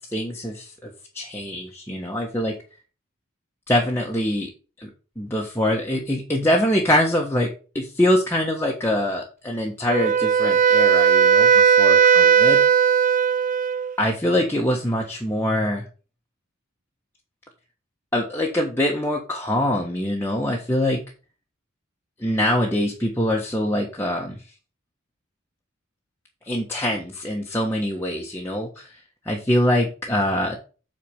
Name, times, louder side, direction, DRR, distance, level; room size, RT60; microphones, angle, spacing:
voice 1, 0.1-2.6 3.7-4.5 4.8-4.9 5.2-12.6 14.0-15.9 18.1-21.0 22.2-24.4 26.4-29.0 29.2-30.6, left 1 dB, 10° left, -1 dB, 1.4 m, -24 dB
Wind instrument woodwind instrument, 9.9-13.9, right 7 dB, 40° right, 0.4 m, -17 dB
8.4 x 4.4 x 7.1 m, 0.35 s
head